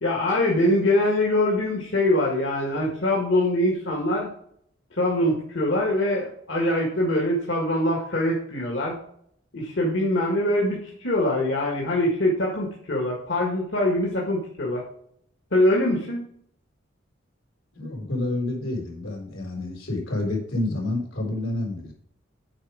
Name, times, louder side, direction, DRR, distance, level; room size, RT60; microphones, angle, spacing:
voice 1, 0.0-4.3 5.0-9.0 9.5-14.9 15.5-16.2, left 1 dB, 65° left, -2 dB, 1.7 m, -23 dB
voice 2, 17.7-21.9, left 2 dB, 90° left, -1 dB, 3.6 m, -29 dB
8.8 x 5.0 x 4.9 m, 0.67 s
head